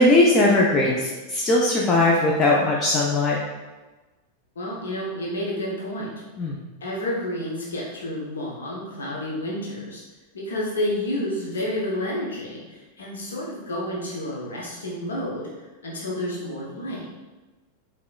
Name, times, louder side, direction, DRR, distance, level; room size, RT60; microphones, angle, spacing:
voice 1, 0.0-3.4 6.4-6.6, left 2 dB, 25° left, -3 dB, 0.5 m, -19 dB
voice 2, 4.6-6.1 6.8-10.0 10.3-17.1, left 1 dB, 65° left, -4 dB, 0.7 m, -30 dB
4.8 x 2.9 x 2.3 m, 1.2 s
figure-of-eight pair, 90°, 0 cm